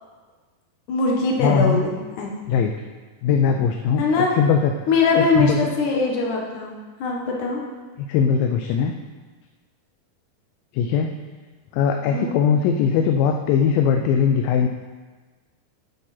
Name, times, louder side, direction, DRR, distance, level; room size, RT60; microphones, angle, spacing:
voice 1, 0.9-2.3 4.0-4.3 4.9-6.7 7.0-7.6 12.1-12.3, left 3 dB, 65° left, -1 dB, 2.7 m, -21 dB
voice 2, 1.4-1.8 2.5-2.7 3.2-4.0 4.4-4.7 5.1-5.6 8.1-9.0 10.7-11.1 11.7-14.7, left 7 dB, 80° left, 5 dB, 2.2 m, -20 dB
11.0 x 8.7 x 4.3 m, 1.4 s
omnidirectional pair, 4.3 m